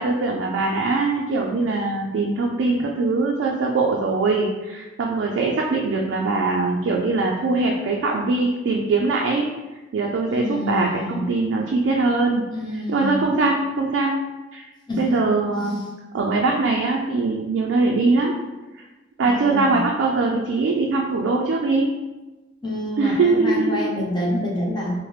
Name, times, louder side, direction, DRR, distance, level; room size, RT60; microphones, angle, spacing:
voice 1, 0.0-9.5 9.9-12.5 12.9-14.1 14.5-14.6 15.0-15.8 16.1-18.4 19.2-21.9 23.0-23.9, right 3 dB, 90° right, -1 dB, 0.3 m, -22 dB
voice 2, 10.3-11.3 12.5-13.2 14.9-15.3 19.2-19.8 22.6-24.9, left 1 dB, 25° left, -4 dB, 0.6 m, -27 dB
3.0 x 2.1 x 3.1 m, 1.1 s
head